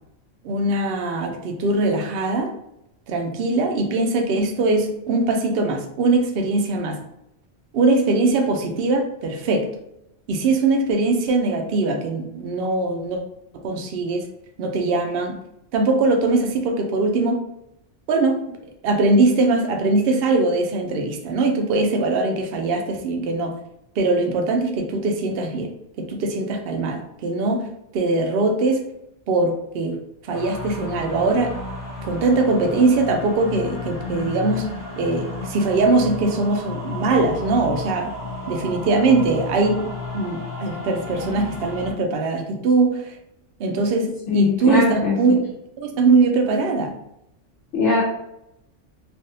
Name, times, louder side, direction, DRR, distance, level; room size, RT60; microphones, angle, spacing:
voice 1, 0.4-2.5 3.1-7.0 7.7-9.7 10.3-13.2 13.6-14.3 14.6-15.4 15.7-17.4 18.1-18.6 18.8-23.5 24.0-25.7 26.0-27.7 27.9-28.8 29.3-31.5 32.0-34.7 35.0-38.1 38.5-39.9 40.1-43.2 43.6-45.4 45.8-46.9, right 3 dB, 60° right, 3 dB, 0.7 m, -21 dB
sound 1, 30.3-41.9, left 2 dB, 25° left, 0.5 m, -33 dB
voice 2, 44.3-45.2 47.7-48.0, left 3 dB, 70° left, -6 dB, 1.0 m, -21 dB
3.4 x 2.3 x 2.6 m, 0.81 s
omnidirectional pair, 1.3 m